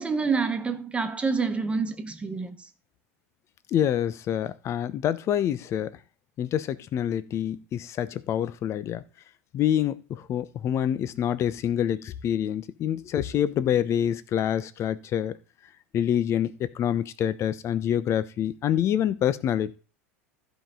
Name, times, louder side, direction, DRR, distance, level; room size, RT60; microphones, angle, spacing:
voice 1, 0.0-2.6, right 4 dB, 15° right, 1.5 m, -27 dB
voice 2, 3.7-6.0 6.4-9.0 9.5-15.4 15.9-19.8, left 10 dB, 40° left, 1.0 m, -26 dB
14.5 x 5.3 x 3.8 m
hypercardioid pair, 85°, 8 cm